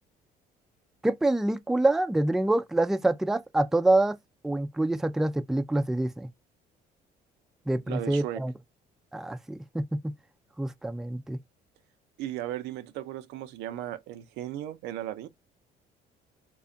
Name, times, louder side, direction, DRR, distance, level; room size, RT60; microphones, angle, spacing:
voice 1, 1.0-4.2 4.4-6.3 7.7-8.5 9.1-10.1 10.6-11.4, right 2 dB, ahead, 0.3 m, -26 dB
voice 2, 7.9-8.4 12.2-15.3, right 12 dB, 90° right, 0.6 m, -36 dB
3.3 x 2.3 x 3.8 m
cardioid pair, 110°, 17 cm